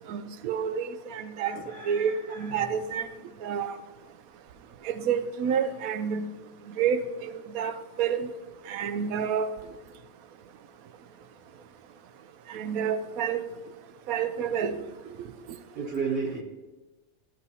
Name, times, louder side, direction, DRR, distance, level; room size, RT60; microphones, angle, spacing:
voice 1, 0.1-1.6 1.9-3.1 3.4-3.8 4.8-6.3 6.8-8.3 8.7-9.5 12.5-13.4 14.1-14.9 15.5-15.6, right 7 dB, 85° right, 1.1 m, -29 dB
voice 2, 1.3-2.6 6.4-6.5 9.6-9.7 14.4-14.6 15.7-16.4, right 5 dB, 50° right, 1.3 m, -34 dB
13.0 x 9.6 x 2.8 m
omnidirectional pair, 1.4 m